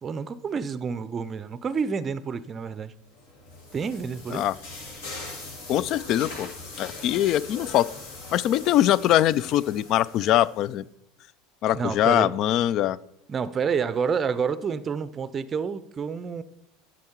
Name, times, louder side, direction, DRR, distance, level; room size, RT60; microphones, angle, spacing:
voice 1, 0.0-2.9 3.7-4.4 11.7-12.3 13.3-16.4, right 6 dB, 30° right, 16 dB, 0.5 m, -29 dB
sound 1, 3.1-10.7, left 3 dB, 70° left, 2.0 m, -41 dB
voice 2, 5.7-6.5 6.8-7.9 8.3-10.8 11.6-13.0, left 12 dB, 50° left, 21 dB, 0.3 m, -22 dB
10.5 x 6.1 x 4.4 m, 0.79 s
hypercardioid pair, 75°, 0 cm